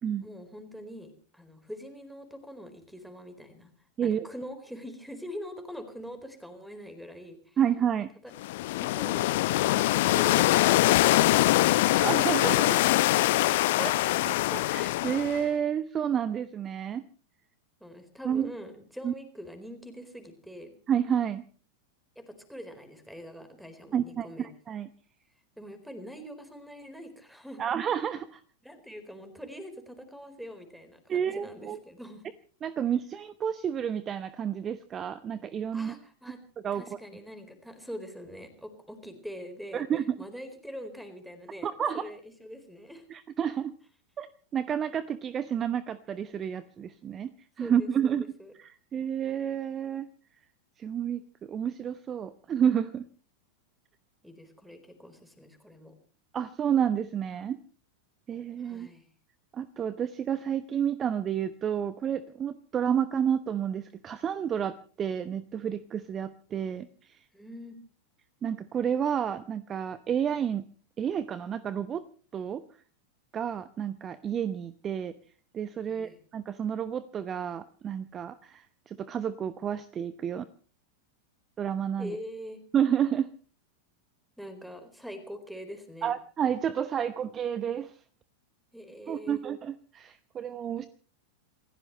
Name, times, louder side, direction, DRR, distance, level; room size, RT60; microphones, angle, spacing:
voice 1, 0.2-3.7 4.0-7.6 8.2-8.3 17.8-20.7 22.2-24.5 25.6-27.7 28.6-32.3 35.7-36.4 36.7-39.9 40.2-43.0 47.6-48.5 54.2-55.9 58.6-59.1 67.3-67.8 75.9-76.2 82.0-82.6 84.4-86.1 88.7-89.4, equal, ahead, 9 dB, 4.3 m, -44 dB
voice 2, 7.6-8.1 12.0-12.9 13.8-14.0 14.2-17.0 18.2-18.5 19.0-19.1 20.9-21.4 23.9-24.9 27.6-28.4 31.1-31.8 32.6-35.9 36.6-36.8 39.7-40.2 41.6-42.1 43.1-43.7 44.2-47.3 47.6-48.2 48.6-50.1 50.8-53.1 56.3-57.6 58.3-58.9 59.5-67.2 68.4-70.7 71.0-72.0 72.3-72.6 73.3-75.2 75.5-80.4 81.6-82.1 82.7-83.3 86.0-87.9 89.1-90.9, right 8 dB, 25° right, 16 dB, 0.9 m, -30 dB
sound 1, 8.4-15.5, left 17 dB, 50° left, 0.7 m, -23 dB
28.0 x 15.5 x 3.2 m, 0.40 s
figure-of-eight pair, 90°, 0 cm